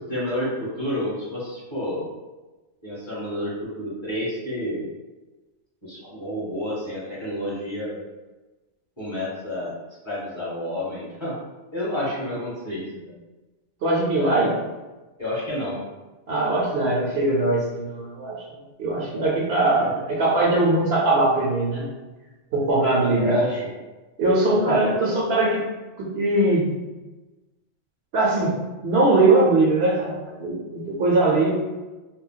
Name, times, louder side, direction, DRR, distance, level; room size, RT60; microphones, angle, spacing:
voice 1, 0.1-2.1 2.8-4.8 5.8-8.0 9.0-9.7 10.0-11.4 11.7-13.2 14.1-14.6 15.2-15.8 19.1-19.3 19.8-19.9 23.0-23.7 24.7-25.0, left 1 dB, 25° left, -9 dB, 0.9 m, -29 dB
voice 2, 13.8-14.5 16.3-18.4 18.8-21.9 22.5-23.3 24.2-25.6 26.0-26.7 28.1-28.6 28.8-31.5, right 2 dB, 65° right, -4 dB, 0.8 m, -21 dB
2.2 x 2.2 x 3.7 m, 1.2 s
omnidirectional pair, 1.2 m